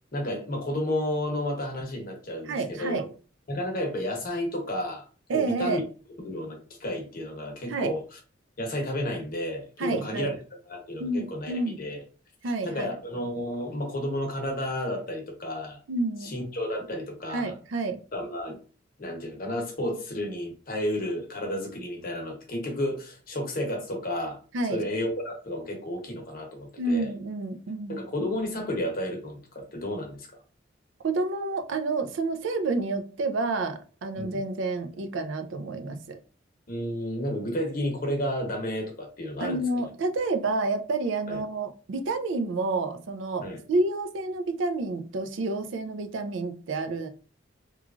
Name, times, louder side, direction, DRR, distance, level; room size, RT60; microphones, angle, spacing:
voice 1, 0.1-3.0 3.5-5.0 5.3-5.8 6.2-8.2 8.6-10.3 10.7-12.0 12.6-15.8 16.2-17.5 18.1-18.6 19.0-24.4 24.7-27.1 27.9-30.3 34.2-34.4 36.7-39.6 41.3-41.4 43.4-43.6, left 1 dB, 50° left, 0.9 m, -32 dB
voice 2, 2.5-3.1 5.3-5.8 7.7-7.9 9.8-10.3 11.0-11.8 12.4-12.9 15.9-16.4 17.3-18.0 24.5-24.8 26.8-28.0 31.0-36.2 39.4-47.1, right 3 dB, 75° right, 0.4 m, -29 dB
3.0 x 2.3 x 2.4 m
head